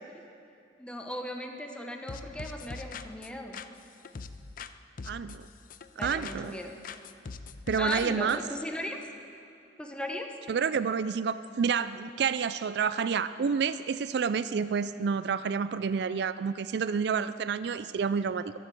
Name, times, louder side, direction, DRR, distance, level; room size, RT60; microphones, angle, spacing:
voice 1, 0.8-3.6 6.0-6.7 7.7-9.0 9.8-10.3, left 1 dB, 5° left, 3 dB, 1.0 m, -37 dB
sound 1, 2.1-4.7 5.0-6.6 6.8-8.4, left 4 dB, 50° left, 0.5 m, -42 dB
voice 2, 5.0-5.5 6.0-6.6 7.7-8.4 10.5-18.5, right 6 dB, 65° right, 14 dB, 0.4 m, -29 dB
23.0 x 8.0 x 7.6 m, 2.6 s
head